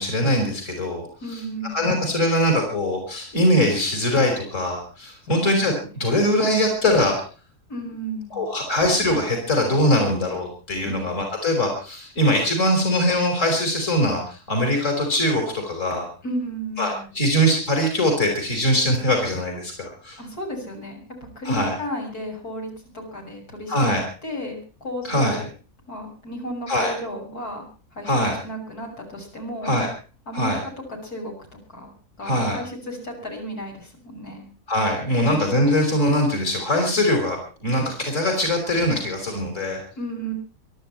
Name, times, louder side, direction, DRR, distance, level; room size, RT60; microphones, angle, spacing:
voice 1, 0.0-1.1 1.7-7.2 8.3-16.1 16.8-20.2 21.5-21.7 23.7-24.0 25.0-25.4 26.7-26.9 28.0-28.4 29.6-29.9 30.3-30.6 32.2-32.6 34.7-39.8, equal, 55° left, 3 dB, 5.3 m, -22 dB
voice 2, 1.2-2.0 5.2-5.4 6.0-6.1 7.7-8.5 10.9-11.1 16.2-17.1 20.2-21.0 21.4-25.5 25.9-28.1 28.4-29.7 30.3-30.7 31.0-31.3 31.7-31.9 32.2-34.5 40.0-40.3, equal, 85° left, -1 dB, 7.5 m, -33 dB
24.5 x 12.5 x 4.5 m, 0.38 s
omnidirectional pair, 1.6 m